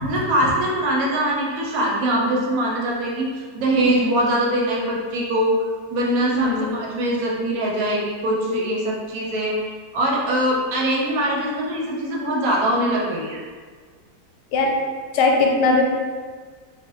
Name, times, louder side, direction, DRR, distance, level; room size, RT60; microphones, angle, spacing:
voice 1, 0.0-9.6 9.9-13.4, right 1 dB, 70° right, -3 dB, 1.0 m, -22 dB
voice 2, 3.8-4.2 6.3-6.8 14.5-14.8 15.1-15.8, left 3 dB, 85° left, 0 dB, 1.2 m, -20 dB
3.1 x 2.4 x 3.0 m, 1.5 s
omnidirectional pair, 1.7 m